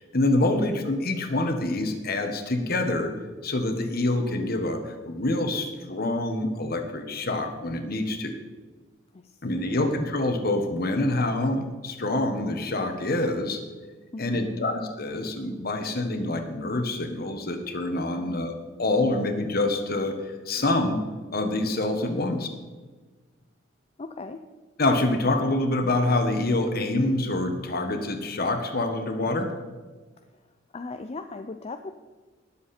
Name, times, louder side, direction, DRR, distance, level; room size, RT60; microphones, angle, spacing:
voice 1, 0.1-3.1 3.4-8.4 9.4-13.6 14.2-21.0 21.3-22.5 24.8-29.8, left 2 dB, 50° left, 6 dB, 1.4 m, -26 dB
voice 2, 9.1-9.9 14.1-14.7 18.1-18.5 22.2-22.3 24.0-24.4 30.3-30.4 30.7-31.9, left 3 dB, 30° left, 7 dB, 0.5 m, -39 dB
19.0 x 7.5 x 4.4 m, 1.3 s
head